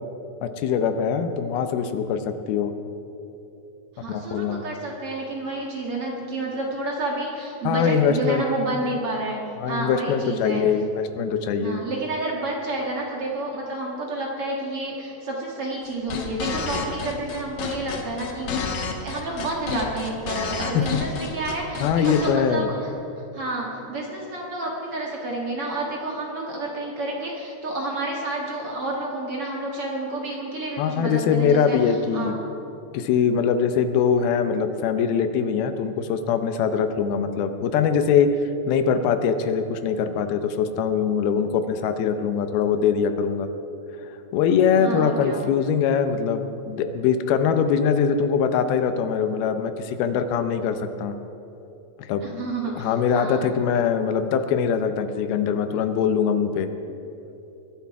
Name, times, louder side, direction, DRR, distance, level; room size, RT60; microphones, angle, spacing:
voice 1, 0.4-2.7 4.1-4.6 7.6-8.4 9.6-11.8 20.7-20.8 21.8-22.7 30.8-32.4 32.9-38.3 38.7-43.5 44.3-51.1 52.1-52.4 52.8-56.7, left 7 dB, 90° left, 9 dB, 2.8 m, -22 dB
voice 2, 4.0-10.6 11.6-18.5 19.0-22.9 23.3-32.3 44.8-45.4 52.2-53.5, right 2 dB, 50° right, -2 dB, 2.1 m, -30 dB
sound 1, 15.8-22.3, left 5 dB, 60° left, 2.3 m, -30 dB
21.5 x 11.5 x 4.7 m, 2.9 s
omnidirectional pair, 4.3 m